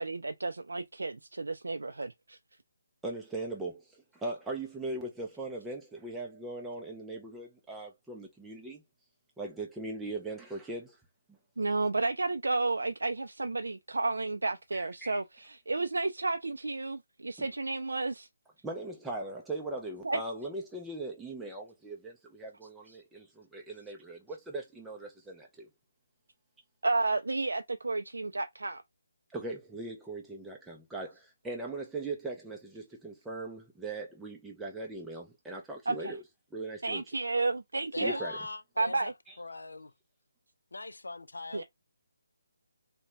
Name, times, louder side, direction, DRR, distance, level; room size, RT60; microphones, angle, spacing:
voice 1, 0.0-2.4 11.6-18.3 20.0-20.2 26.8-28.8 35.9-36.1 36.8-38.2 38.8-39.1 41.5-41.6, right 3 dB, 85° right, 0.3 m, -32 dB
voice 2, 3.0-8.8 9.4-11.0 14.7-15.2 17.4-17.5 18.6-25.7 29.3-36.2 36.5-37.0 38.0-38.4 39.3-39.4, right 2 dB, 5° right, 0.4 m, -40 dB
voice 3, 37.9-39.1 39.4-39.9 40.7-41.6, left 3 dB, 90° left, 0.4 m, -41 dB
2.7 x 2.1 x 3.2 m
figure-of-eight pair, 160°, 0 cm